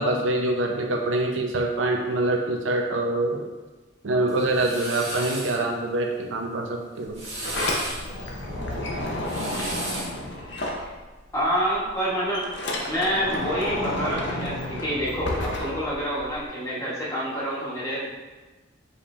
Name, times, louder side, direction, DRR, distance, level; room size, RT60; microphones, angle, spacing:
voice 1, 0.0-3.4 4.0-7.2, right 2 dB, 80° right, 2 dB, 0.5 m, -25 dB
sound 1, 4.3-5.6 7.0-8.0 9.1-10.2, right 1 dB, 35° right, 1.0 m, -34 dB
Sliding door, 7.1-11.4 11.7-16.4, left 1 dB, 60° left, 0.6 m, -31 dB
voice 2, 11.3-12.5 12.8-18.1, equal, 15° left, -7 dB, 1.1 m, -27 dB
5.1 x 2.7 x 3.2 m, 1.2 s
head